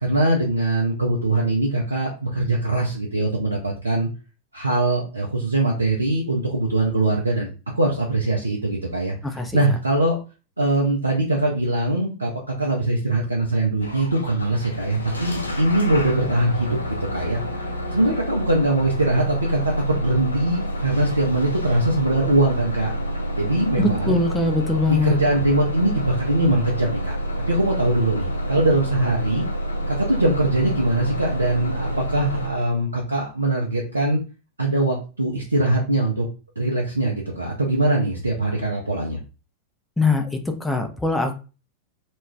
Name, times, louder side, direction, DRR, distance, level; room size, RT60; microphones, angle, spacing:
voice 1, 0.0-4.1 4.5-7.5 7.8-9.2 9.5-10.2 10.6-16.8 17.1-17.4 17.9-22.9 23.4-24.2 25.0-27.2 27.5-29.5 29.9-34.2 34.6-36.3 36.6-39.2, right 2 dB, 80° right, -2 dB, 0.5 m, -22 dB
voice 2, 9.2-9.8 23.8-25.2 40.0-41.3, left 3 dB, 5° left, 4 dB, 0.5 m, -23 dB
Bus / Engine starting, 13.8-32.5, equal, 80° left, 0.4 m, -28 dB
2.3 x 2.3 x 3.3 m, 0.33 s
figure-of-eight pair, 90°, 0 cm